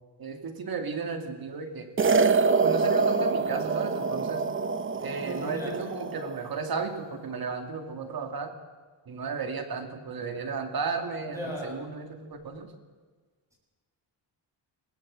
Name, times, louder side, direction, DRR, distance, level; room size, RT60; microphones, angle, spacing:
voice 1, 0.2-1.9 2.6-4.5 5.0-8.5 9.1-12.7, right 5 dB, 50° right, 6 dB, 2.5 m, -34 dB
sound 1, 2.0-6.4, right 4 dB, 25° right, 0.7 m, -25 dB
voice 2, 5.2-5.8 11.3-11.8, equal, 5° right, -2 dB, 7.7 m, -37 dB
21.5 x 19.5 x 7.7 m, 1.4 s
wide cardioid pair, 175°, 46 cm